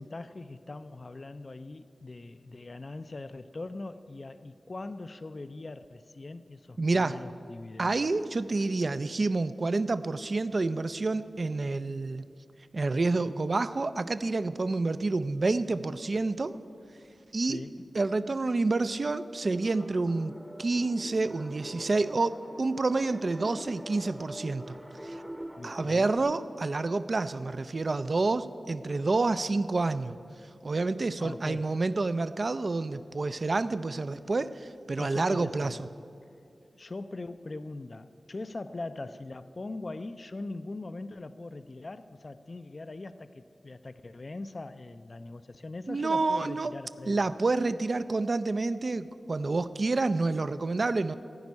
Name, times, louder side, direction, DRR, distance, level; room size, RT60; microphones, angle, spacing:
voice 1, 0.0-8.1 17.5-17.9 25.6-26.1 31.2-31.7 35.0-35.8 36.7-47.3, left 2 dB, 50° left, 12 dB, 0.4 m, -41 dB
voice 2, 6.8-7.2 7.8-12.2 12.7-16.6 17.3-17.7 17.9-24.8 25.0-25.2 25.6-30.2 30.6-35.8 45.9-46.7 47.1-51.2, right 3 dB, 55° right, 13 dB, 0.4 m, -28 dB
sound 1, 19.4-26.2, equal, ahead, 0.7 m, -44 dB
15.0 x 5.2 x 9.5 m, 2.6 s
cardioid pair, 55°, 0 cm